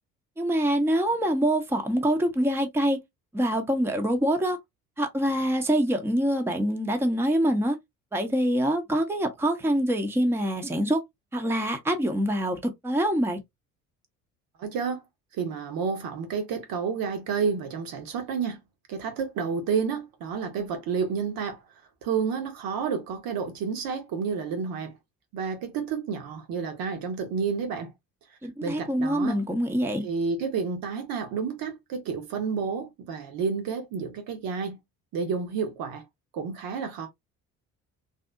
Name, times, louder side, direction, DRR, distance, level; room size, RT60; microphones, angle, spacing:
voice 1, 0.4-3.0 3.3-4.6 5.0-7.8 8.1-11.0 11.3-13.4 28.4-30.1, equal, 5° right, 0.8 m, -25 dB
voice 2, 14.6-15.0 15.3-18.6 18.9-21.6 22.0-24.9 25.3-27.9 28.6-29.4 30.0-34.8 35.1-36.0 36.3-37.1, right 6 dB, 55° right, 1.0 m, -30 dB
3.4 x 2.6 x 2.4 m
figure-of-eight pair, 50°, 43 cm